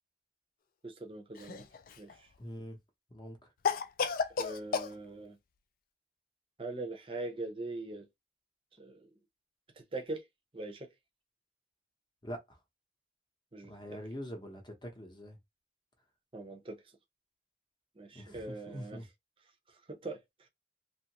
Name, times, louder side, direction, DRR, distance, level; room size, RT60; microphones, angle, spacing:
voice 1, 0.8-1.7 2.0-2.3 4.4-5.4 6.6-8.0 8.8-9.1 9.8-10.2 10.5-10.9 13.5-14.0 16.3-16.8 18.0-19.0 19.9-20.5, right 2 dB, 30° right, 0.6 m, -42 dB
Cough, 1.3-2.1 3.6-4.9, left 6 dB, 45° left, 0.3 m, -32 dB
voice 2, 2.4-2.8 3.1-3.4 12.2-12.6 13.7-15.4 18.1-19.1, equal, 25° left, 0.8 m, -44 dB
2.7 x 2.5 x 2.9 m
head